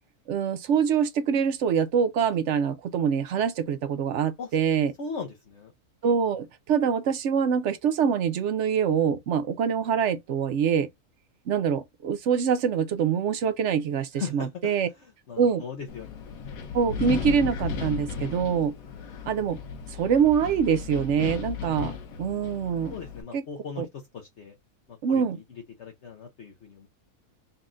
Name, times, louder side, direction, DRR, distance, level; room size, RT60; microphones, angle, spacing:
voice 1, 0.3-4.9 6.0-10.9 11.5-14.9 15.4-15.6 16.7-18.7 19.3-19.6 19.9-22.9 23.3-23.4 23.8-23.9 25.0-25.4, right 7 dB, 65° right, 0.8 m, -25 dB
voice 2, 5.0-5.7 14.1-16.4 22.9-24.6 24.9-26.9, left 5 dB, 55° left, 1.0 m, -39 dB
Wind, 15.9-23.2, left 6 dB, 70° left, 1.3 m, -35 dB
4.1 x 2.4 x 3.8 m
omnidirectional pair, 1.6 m